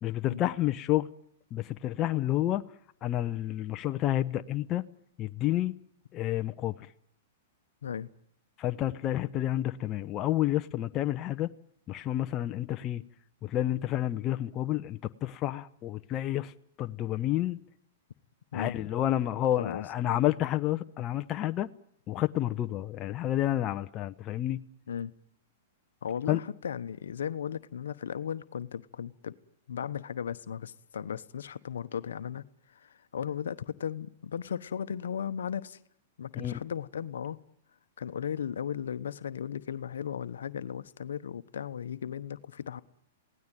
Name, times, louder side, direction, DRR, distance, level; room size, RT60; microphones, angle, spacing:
voice 1, 0.0-1.1 1.5-2.6 3.0-4.8 5.2-5.7 6.1-6.8 8.6-11.5 11.9-13.0 13.4-16.5 16.8-17.6 18.5-21.7 22.1-24.6 26.3-26.4 36.3-36.6, left 13 dB, 30° left, 0.9 m, -29 dB
voice 2, 19.6-20.2 24.9-25.1 26.0-29.4 29.7-35.8 36.2-37.4 38.0-42.8, left 8 dB, 85° left, 1.0 m, -36 dB
28.0 x 17.5 x 9.2 m
hypercardioid pair, 130°, 0 cm